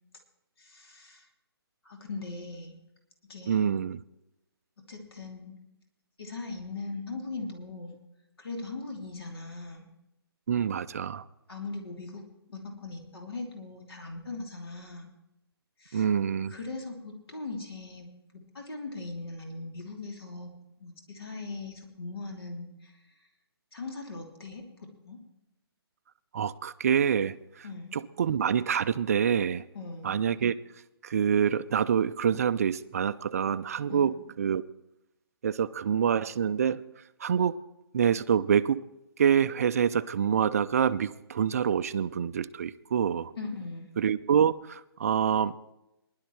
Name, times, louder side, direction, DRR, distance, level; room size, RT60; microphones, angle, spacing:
voice 1, 0.6-1.3 1.8-2.7 3.3-3.8 4.8-5.5 6.2-8.0 8.4-9.8 11.5-15.1 15.8-16.1 16.5-20.5 20.8-23.0 23.7-25.2 27.6-28.0 29.7-30.2 33.9-34.1 43.4-43.9, left 3 dB, 70° left, 3.0 m, -40 dB
voice 2, 3.5-4.0 10.5-11.2 15.9-16.5 26.3-27.7 27.9-29.7 30.0-30.6 31.0-34.7 35.4-37.6 37.9-38.8 39.2-43.3 44.0-45.5, right 8 dB, 35° right, 0.4 m, -26 dB
20.0 x 11.5 x 3.2 m
hypercardioid pair, 155°, 13 cm